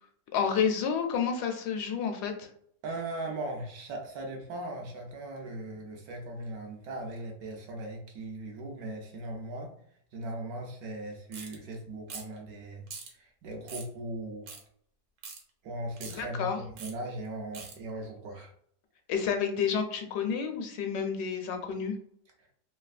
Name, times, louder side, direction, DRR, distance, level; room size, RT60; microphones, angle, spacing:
voice 1, 0.3-2.5 16.2-16.6 19.1-21.9, left 6 dB, 75° left, 5 dB, 1.1 m, -30 dB
voice 2, 2.8-9.7 10.1-14.6 15.6-16.5 16.8-18.5, right 2 dB, 70° right, 2 dB, 1.0 m, -39 dB
sound 1, 11.3-11.6 12.1-12.4 12.9-13.1 13.7-13.9 14.5-14.6 15.2-15.4 16.0-16.2 16.8-16.9 17.5-17.7, right 5 dB, 90° right, 1.4 m, -42 dB
3.2 x 2.7 x 2.4 m, 0.67 s
omnidirectional pair, 1.8 m